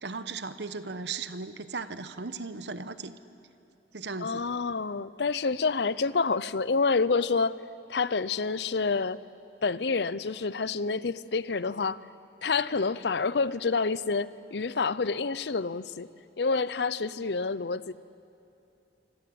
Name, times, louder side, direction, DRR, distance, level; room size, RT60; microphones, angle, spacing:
voice 1, 0.0-3.1 3.9-4.4, right 4 dB, 75° right, 12 dB, 1.1 m, -37 dB
voice 2, 4.2-7.5 7.9-9.2 9.6-12.0 12.4-16.1 16.4-17.9, left 4 dB, 70° left, 17 dB, 0.7 m, -28 dB
26.0 x 25.5 x 7.8 m, 2.8 s
head